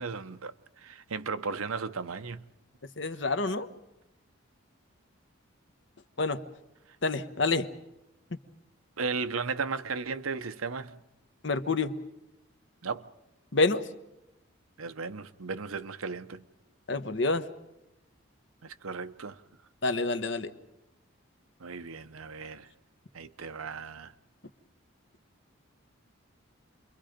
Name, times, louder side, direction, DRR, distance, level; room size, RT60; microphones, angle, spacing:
voice 1, 0.0-2.5 9.0-11.0 12.8-13.1 14.8-16.5 18.6-19.4 21.6-22.7 23.1-24.1, right 4 dB, 85° right, 0.9 m, -35 dB
voice 2, 3.0-3.7 6.2-6.4 7.0-7.7 11.4-11.9 13.5-13.8 16.9-17.4 19.8-20.5, left 3 dB, 55° left, 1.1 m, -27 dB
29.0 x 23.0 x 5.1 m
head